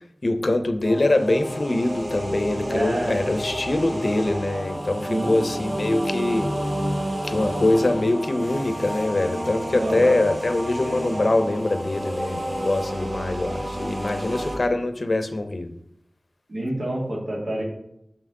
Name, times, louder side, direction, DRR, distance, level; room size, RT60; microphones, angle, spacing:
voice 1, 0.2-6.5 7.2-15.7, left 2 dB, 60° left, 9 dB, 0.6 m, -23 dB
sound 1, 0.8-14.5, equal, 55° right, 2.9 m, -30 dB
voice 2, 2.6-3.4 5.1-5.4 9.7-10.2 16.5-17.6, right 1 dB, 75° right, -3 dB, 2.2 m, -28 dB
5.9 x 5.8 x 3.7 m, 0.76 s
wide cardioid pair, 55°, 0 cm